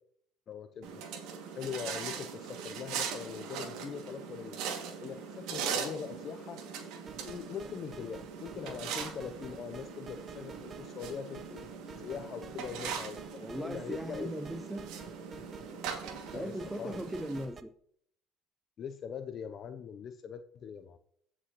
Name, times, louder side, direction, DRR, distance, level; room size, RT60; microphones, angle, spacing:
voice 1, 0.5-0.9 1.5-4.6 5.0-6.6 7.3-11.6 12.0-14.3 15.3-15.4 16.3-17.0 18.8-21.0, left 7 dB, 50° left, 8 dB, 0.6 m, -42 dB
sound 1, 0.8-17.4, right 6 dB, 70° right, 2.2 m, -41 dB
sound 2, 7.1-17.6, right 5 dB, 35° right, 0.9 m, -51 dB
voice 2, 13.4-14.9 16.3-17.7, right 1 dB, 5° right, 10 dB, 0.5 m, -38 dB
15.0 x 6.2 x 3.0 m, 0.65 s
hypercardioid pair, 75°, 0 cm